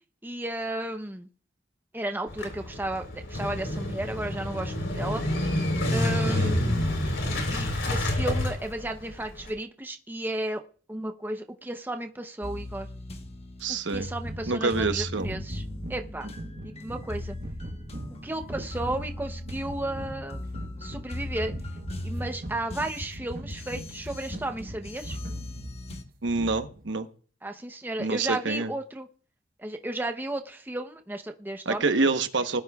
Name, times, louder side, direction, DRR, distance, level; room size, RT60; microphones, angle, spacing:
voice 1, 0.2-1.3 1.9-5.2 5.9-6.9 7.5-10.6 10.9-12.9 13.7-15.6 15.9-16.3 16.6-17.4 18.1-20.4 20.8-21.5 22.0-25.2 27.4-29.1 29.6-32.2, right 1 dB, 10° right, 5 dB, 0.7 m, -34 dB
Motorcycle / Engine starting, 2.3-9.5, left 1 dB, 75° left, 3.8 m, -28 dB
sound 1, 12.4-26.0, left 1 dB, 35° left, 1.2 m, -38 dB
voice 2, 13.6-14.1 14.5-15.3 26.2-27.1 28.0-28.7 31.6-32.6, right 3 dB, 75° right, 8 dB, 1.0 m, -27 dB
sound 2, 14.2-26.9, right 1 dB, 50° right, 1.1 m, -42 dB
20.0 x 13.0 x 2.4 m, 0.42 s
head